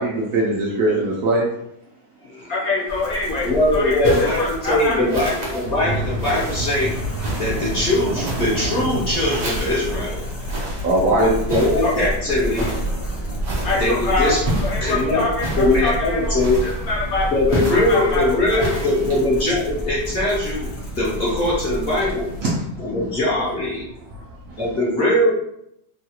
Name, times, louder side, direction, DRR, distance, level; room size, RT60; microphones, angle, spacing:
voice 1, 0.0-1.5 10.8-11.3 22.4-22.9, right 1 dB, 70° right, -4 dB, 0.8 m, -20 dB
voice 2, 2.5-5.1 11.8-12.1 13.6-14.3 14.6-17.6 17.9-18.9, left 2 dB, 60° left, -4 dB, 1.2 m, -24 dB
sound 1, 2.9-22.4, right 1 dB, 80° left, 0.4 m, -30 dB
voice 3, 3.4-6.9 7.4-10.3 11.2-12.7 13.8-14.4 14.8-15.2 15.6-16.6 17.3-22.2 22.8-23.8 24.6-25.3, left 1 dB, 45° left, -7 dB, 0.9 m, -21 dB
sound 2, 4.0-4.6 5.1-5.7 6.2-6.7 7.2-7.7 8.2-8.8 9.3-9.9 10.5-10.9 11.5-12.0 12.5-12.9 13.4-13.9 14.4-14.9 15.4-15.8 16.4-16.9 17.5-18.1 18.6-19.2, right 1 dB, 45° right, 0.5 m, -29 dB
sound 3, 5.6-24.7, equal, 85° right, 1.2 m, -33 dB
3.1 x 2.3 x 2.8 m, 0.76 s
omnidirectional pair, 1.8 m